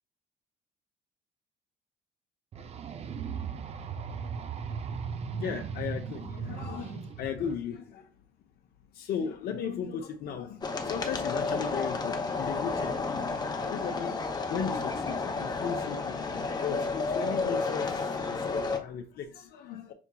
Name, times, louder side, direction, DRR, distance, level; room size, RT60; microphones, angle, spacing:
sound 1, 2.5-7.5, right 6 dB, 40° right, 0.4 m, -37 dB
voice 1, 5.4-8.1 8.9-13.0 13.6-19.9, left 7 dB, 70° left, 4 dB, 0.7 m, -36 dB
sound 2, 10.6-18.8, left 4 dB, 25° left, 0.7 m, -31 dB
5.9 x 2.8 x 2.2 m, 0.34 s
cardioid pair, 110°, 17 cm